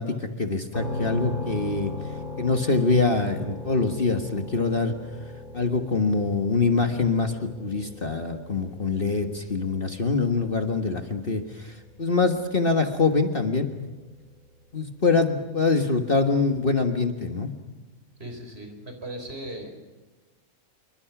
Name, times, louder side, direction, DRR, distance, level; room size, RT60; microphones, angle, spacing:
voice 1, 0.0-1.9 2.4-4.9 5.5-11.7 12.0-13.7 14.7-17.5, left 4 dB, 40° left, 6 dB, 1.7 m, -24 dB
sound 1, 0.7-14.5, left 3 dB, 80° left, 3.6 m, -38 dB
voice 2, 18.2-19.7, right 1 dB, 45° right, 5 dB, 5.0 m, -37 dB
27.5 x 23.5 x 6.1 m, 1.2 s
omnidirectional pair, 1.5 m